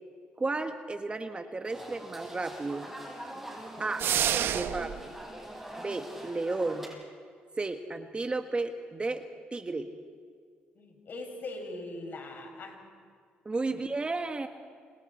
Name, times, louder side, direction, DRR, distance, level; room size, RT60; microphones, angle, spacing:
voice 1, 0.4-2.9 3.8-4.1 4.5-5.1 5.8-6.9 7.6-9.2 9.5-9.9 13.4-14.5, right 3 dB, 25° right, 7 dB, 1.5 m, -33 dB
sound 1, 1.7-6.9, right 1 dB, 5° right, 7.6 m, -43 dB
voice 2, 3.8-4.1 4.6-4.9 10.8-12.8 13.7-13.8, left 2 dB, 55° left, 2 dB, 6.2 m, -42 dB
sound 2, 4.0-5.0, right 10 dB, 70° right, 0.8 m, -28 dB
30.0 x 26.5 x 4.4 m, 2.1 s
supercardioid pair, 70°, 4 cm